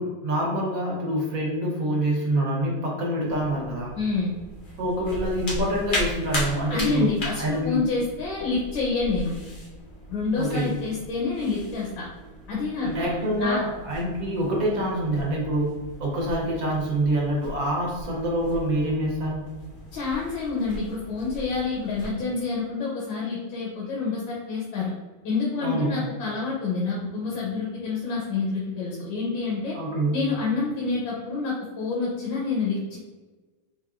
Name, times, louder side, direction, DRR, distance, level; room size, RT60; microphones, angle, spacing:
voice 1, 0.0-3.9 4.8-7.1 7.4-7.9 10.4-10.8 12.8-19.5 25.6-26.0 29.7-30.4, right 1 dB, 55° right, -3 dB, 1.1 m, -26 dB
sound 1, 3.2-22.1, equal, 50° left, 0.6 m, -37 dB
voice 2, 4.0-4.3 6.7-9.3 10.1-12.1 12.5-13.6 19.9-24.9 25.2-29.8 30.1-33.0, left 4 dB, 80° left, -4 dB, 1.5 m, -28 dB
4.6 x 2.6 x 2.4 m, 1.3 s
omnidirectional pair, 2.1 m